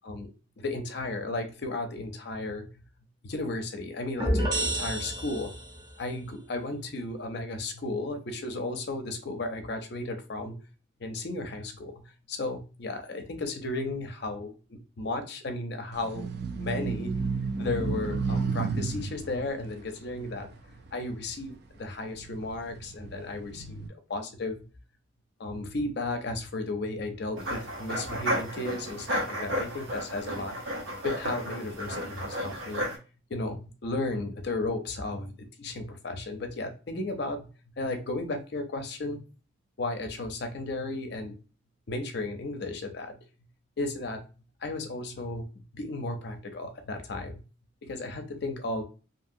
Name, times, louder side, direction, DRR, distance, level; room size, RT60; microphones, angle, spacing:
voice 1, 0.6-2.7 3.2-5.6 6.0-10.5 11.0-11.9 12.3-16.3 16.5-17.1 17.6-20.5 20.9-23.8 24.1-24.6 25.4-30.6 31.0-32.8 33.3-35.3 35.6-37.5 37.8-39.2 39.8-41.3 41.9-43.1 43.8-44.2 44.6-45.4 45.7-47.3 47.8-48.8, left 2 dB, 60° left, 6 dB, 0.5 m, -34 dB
sound 1, 4.2-5.9, right 1 dB, 20° right, 0.7 m, -29 dB
sound 2, 15.9-21.5 22.0-23.9, right 4 dB, 55° right, 0.4 m, -33 dB
sound 3, 27.4-33.0, equal, 75° right, 0.9 m, -33 dB
2.8 x 2.7 x 2.6 m, 0.34 s
head